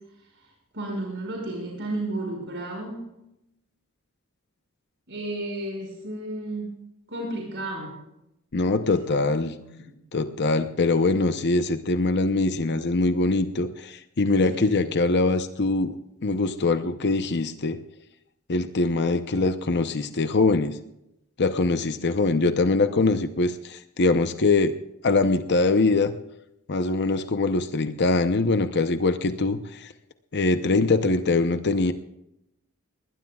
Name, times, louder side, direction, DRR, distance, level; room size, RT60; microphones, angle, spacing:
voice 1, 0.7-3.0 5.1-6.8 7.1-7.9 8.9-9.2 9.5-9.9 14.3-14.8, right 1 dB, 60° right, 0 dB, 5.7 m, -33 dB
voice 2, 8.5-9.5 10.1-16.0 16.2-17.8 18.5-20.8 21.4-24.7 25.0-26.1 26.7-29.9 30.3-31.9, left 3 dB, 50° left, 9 dB, 0.8 m, -23 dB
21.5 x 20.0 x 2.4 m, 0.85 s
head